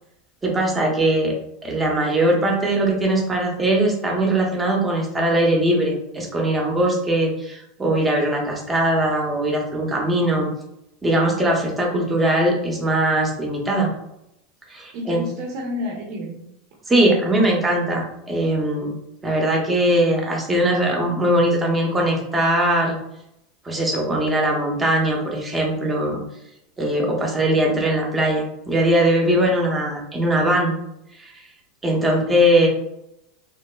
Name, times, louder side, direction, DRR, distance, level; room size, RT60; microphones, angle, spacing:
voice 1, 0.4-1.3 1.6-10.5 11.0-13.9 14.7-15.2 16.9-19.0 19.2-23.0 23.6-26.2 26.8-30.7 31.2-31.4 31.8-32.7, right 1 dB, 15° right, 0 dB, 0.8 m, -20 dB
voice 2, 14.9-16.4, left 1 dB, 60° right, -2 dB, 0.7 m, -30 dB
3.0 x 2.5 x 2.2 m, 0.81 s
supercardioid pair, 120°, 0 cm